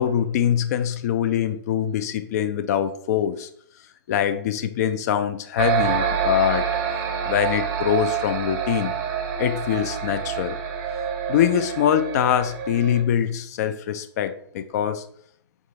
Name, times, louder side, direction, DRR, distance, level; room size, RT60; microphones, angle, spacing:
voice 1, 0.0-3.5 4.1-6.7 7.2-8.9 9.4-10.6 11.3-15.0, left 9 dB, 40° left, 11 dB, 0.4 m, -23 dB
sound 1, 5.6-13.0, right 7 dB, 30° right, 0.6 m, -27 dB
3.6 x 2.3 x 3.8 m, 0.64 s
figure-of-eight pair, 125°, 14 cm